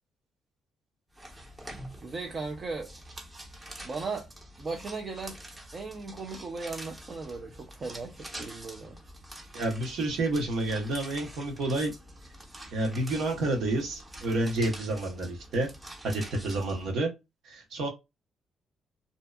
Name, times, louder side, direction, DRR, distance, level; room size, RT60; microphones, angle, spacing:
sound 1, 1.1-16.9, right 1 dB, 20° right, 0.8 m, -46 dB
voice 1, 2.0-2.9 3.8-4.3 4.6-5.4 5.7-9.0, right 4 dB, 45° right, 0.5 m, -37 dB
voice 2, 9.5-11.9 12.7-15.7 16.0-17.1 17.4-17.9, right 2 dB, 80° right, 1.0 m, -29 dB
2.7 x 2.2 x 2.2 m
cardioid pair, 90°, 0 cm